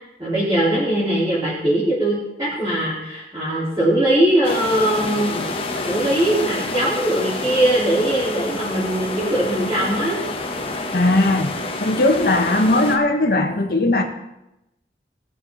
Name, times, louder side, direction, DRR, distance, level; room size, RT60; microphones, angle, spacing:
voice 1, 0.2-5.5 5.8-10.2, right 1 dB, 20° right, 4.3 m, -20 dB
sound 1, 4.4-13.0, left 2 dB, 30° left, 1.2 m, -28 dB
voice 2, 10.9-11.5 11.8-14.0, left 2 dB, 55° left, 1.4 m, -18 dB
20.0 x 7.5 x 4.1 m
head